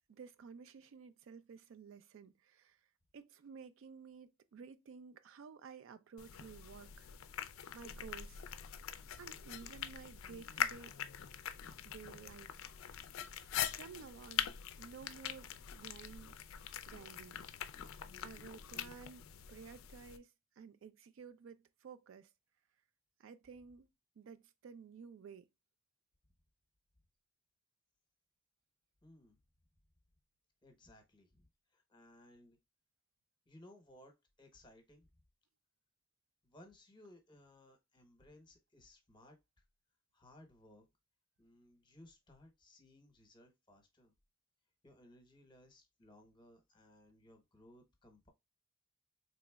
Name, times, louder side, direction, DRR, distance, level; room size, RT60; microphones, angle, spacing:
voice 1, 0.1-2.8 3.1-7.1 7.7-8.4 9.2-11.0 11.8-12.7 13.4-14.5 14.7-16.3 16.8-17.4 18.2-22.3 23.2-23.9 24.2-25.5, right 6 dB, 65° right, 0.3 m, -53 dB
sound 1, 6.2-20.2, left 10 dB, 75° left, 0.4 m, -43 dB
voice 2, 11.9-12.2 29.0-29.4 30.6-32.6 33.5-35.1 36.4-39.4 40.1-40.9 41.4-44.1 44.8-48.3, left 1 dB, 20° left, 0.8 m, -61 dB
3.8 x 3.1 x 2.2 m
head